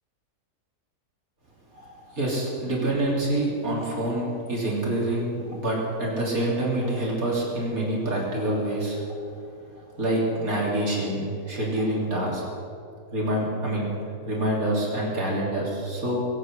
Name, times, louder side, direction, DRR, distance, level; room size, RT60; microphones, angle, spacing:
voice 1, 1.7-9.0 10.0-12.4 13.1-13.9 14.3-16.2, right 1 dB, 60° right, -4 dB, 3.7 m, -26 dB
21.5 x 8.7 x 6.3 m, 2.5 s
omnidirectional pair, 1.7 m